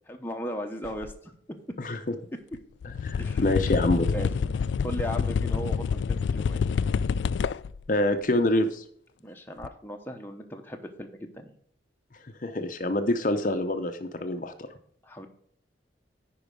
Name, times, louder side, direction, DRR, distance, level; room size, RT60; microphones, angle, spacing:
voice 1, 0.1-1.6 3.2-3.5 4.1-4.3 4.8-6.6 9.2-11.5 15.0-15.3, equal, 10° left, 3 dB, 0.9 m, -37 dB
sound 1, 0.8-1.1 2.5-2.6 2.8-7.8 9.6-9.7, left 6 dB, 80° left, 0.3 m, -27 dB
voice 2, 1.8-2.1 2.8-4.1 7.9-8.8 12.4-14.5, left 1 dB, 45° left, 7 dB, 0.7 m, -26 dB
10.5 x 4.7 x 4.7 m, 0.64 s
head